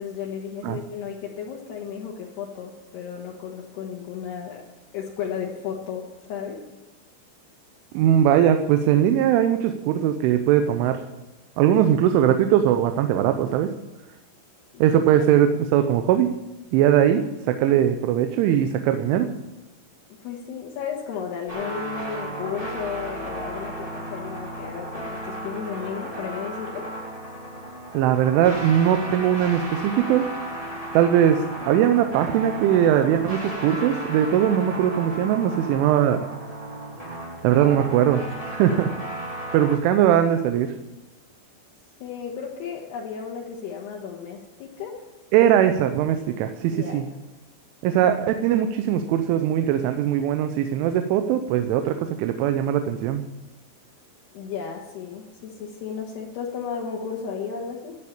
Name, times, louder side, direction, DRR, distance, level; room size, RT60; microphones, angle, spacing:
voice 1, 0.0-4.6 4.9-6.6 14.7-14.8 15.2-15.3 20.2-26.9 42.0-45.0 46.7-47.0 54.3-58.0, left 7 dB, 70° left, -2 dB, 3.2 m, -34 dB
voice 2, 7.9-11.0 11.6-13.7 14.8-16.3 16.7-19.3 27.9-30.3 30.9-36.2 37.4-38.9 39.5-40.7 45.3-47.0 47.8-53.2, right 10 dB, 85° right, 8 dB, 3.2 m, -20 dB
sound 1, 21.5-39.8, right 1 dB, 15° right, 1.3 m, -34 dB
13.0 x 8.5 x 8.7 m, 1.0 s
omnidirectional pair, 5.4 m